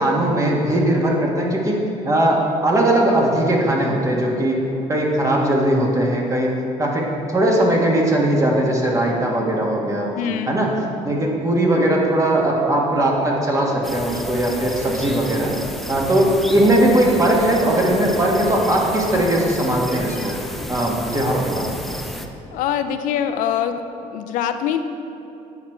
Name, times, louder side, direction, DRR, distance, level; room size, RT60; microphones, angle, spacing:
voice 1, 0.0-1.8 2.0-4.6 4.9-10.1 10.5-10.7 11.0-15.5 15.9-20.3 20.7-21.7, right 1 dB, 25° right, -2 dB, 1.5 m, -19 dB
voice 2, 10.2-10.6 22.5-23.8 24.1-24.8, left 9 dB, 85° left, 8 dB, 0.4 m, -23 dB
sound 1, 13.8-22.3, equal, ahead, 0.5 m, -32 dB
8.6 x 5.8 x 4.5 m, 2.9 s
cardioid pair, 100°, 13 cm